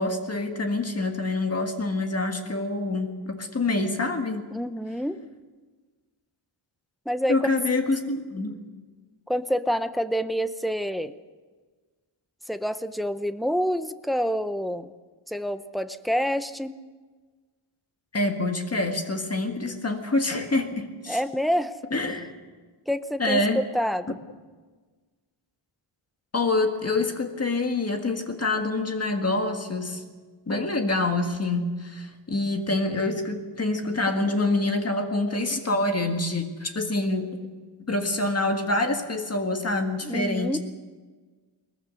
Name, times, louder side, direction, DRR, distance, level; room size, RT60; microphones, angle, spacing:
voice 1, 0.0-4.4 7.3-8.6 18.1-21.2 21.9-22.3 23.2-23.6 26.3-30.0 30.5-37.3 37.9-40.6, left 2 dB, 30° left, 5 dB, 1.7 m, -26 dB
voice 2, 4.5-5.2 7.1-7.5 9.3-11.2 12.5-14.9 15.3-16.7 21.1-21.7 22.9-24.2 40.0-40.6, equal, ahead, 11 dB, 0.6 m, -27 dB
21.5 x 20.0 x 6.3 m, 1.4 s
wide cardioid pair, 170°, 50 cm